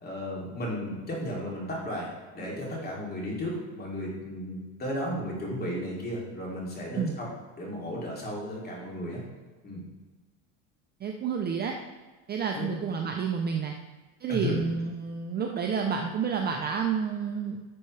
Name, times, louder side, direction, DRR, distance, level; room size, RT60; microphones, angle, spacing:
voice 1, 0.0-7.3 7.6-9.2 9.6-9.8 12.5-12.7 14.3-14.6, equal, 25° left, -3 dB, 2.7 m, -34 dB
voice 2, 11.0-11.8 12.3-13.7 14.2-17.6, right 6 dB, 25° right, 3 dB, 0.5 m, -29 dB
11.5 x 6.5 x 3.3 m, 1.3 s
cardioid pair, 150°, 40 cm